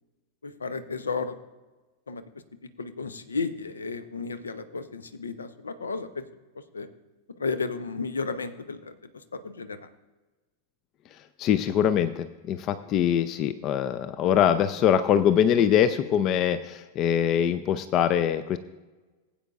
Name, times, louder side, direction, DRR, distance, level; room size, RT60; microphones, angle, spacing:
voice 1, 0.4-1.4 2.1-2.2 2.8-6.2 6.7-6.9 7.4-9.0 9.3-9.9, left 4 dB, 75° left, 12 dB, 0.8 m, -33 dB
voice 2, 11.4-18.6, left 9 dB, 35° left, 13 dB, 0.5 m, -23 dB
20.0 x 8.6 x 2.5 m, 1.2 s
figure-of-eight pair, 90°, 0 cm